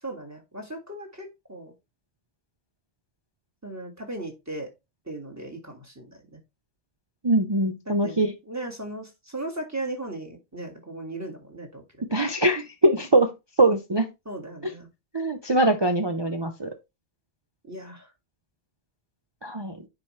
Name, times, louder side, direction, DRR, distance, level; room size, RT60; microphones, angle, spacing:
voice 1, 0.0-1.7 3.6-4.7 5.1-6.4 7.9-12.1 14.3-14.9 17.7-18.1, right 2 dB, 15° right, 1.8 m, -37 dB
voice 2, 7.2-8.3 12.1-13.3 13.6-14.1 15.1-16.7 19.4-19.8, right 1 dB, 30° right, 0.6 m, -22 dB
9.6 x 4.5 x 3.2 m
omnidirectional pair, 1.2 m